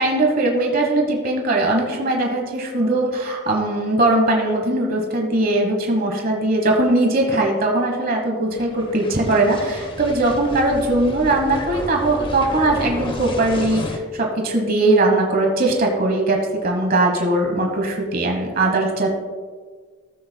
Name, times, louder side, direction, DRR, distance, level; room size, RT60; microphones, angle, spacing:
voice 1, 0.0-19.1, right 2 dB, 45° right, 1 dB, 1.2 m, -20 dB
sound 1, 8.5-14.0, left 1 dB, 25° left, 0.7 m, -31 dB
13.5 x 8.7 x 2.2 m, 1.5 s
head